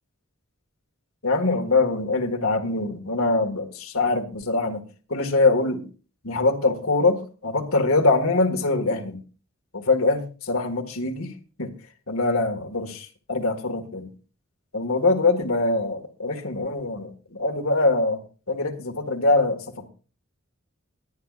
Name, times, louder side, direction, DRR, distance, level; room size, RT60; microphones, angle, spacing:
voice 1, 1.2-4.8 5.1-5.8 6.2-9.2 9.7-11.3 11.6-11.7 12.1-14.1 14.7-18.2 18.5-19.9, left 3 dB, 80° left, 4 dB, 1.9 m, -23 dB
23.0 x 9.8 x 2.5 m, 0.36 s
head